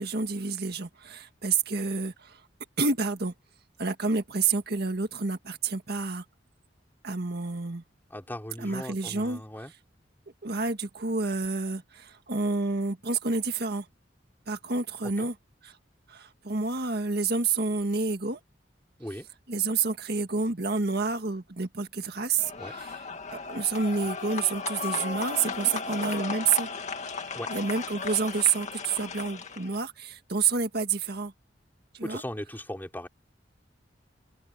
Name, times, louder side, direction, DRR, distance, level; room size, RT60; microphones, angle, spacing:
voice 1, 0.0-2.4 2.8-3.3 3.8-6.2 7.0-7.8 8.6-9.4 10.4-13.9 14.5-15.4 15.6-15.8 16.1-18.4 19.5-23.0 23.3-26.7 27.1-27.2 27.5-31.3 31.9-32.2, right 4 dB, 60° right, 1.8 m, -29 dB
voice 2, 8.1-9.7 15.2-15.3 19.0-19.3 22.6-22.7 27.3-27.5 32.0-33.1, left 1 dB, 10° left, 4.6 m, -38 dB
sound 1, 22.4-29.8, left 4 dB, 40° left, 2.2 m, -35 dB
head